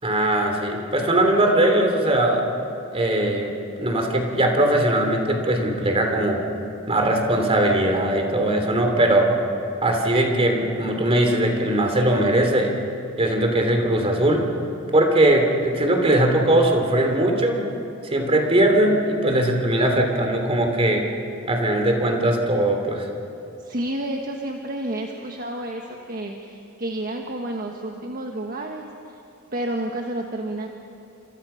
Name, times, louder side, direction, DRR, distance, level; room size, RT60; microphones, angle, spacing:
voice 1, 0.0-2.4 2.9-3.5 3.8-6.4 6.9-9.3 9.8-12.7 13.2-14.5 14.9-17.6 18.0-21.0 21.5-23.1, right 1 dB, 30° right, 3 dB, 3.3 m, -20 dB
voice 2, 23.6-29.2 29.5-30.7, right 1 dB, 45° right, 2 dB, 1.5 m, -30 dB
29.5 x 26.5 x 5.8 m, 2.6 s
head